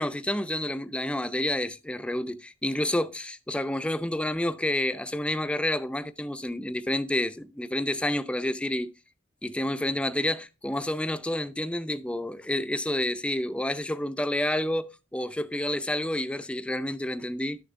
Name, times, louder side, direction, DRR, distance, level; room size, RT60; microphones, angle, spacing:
voice 1, 0.0-8.9 9.4-17.6, left 1 dB, 5° left, 0.4 m, -29 dB
11.5 x 6.7 x 2.5 m
head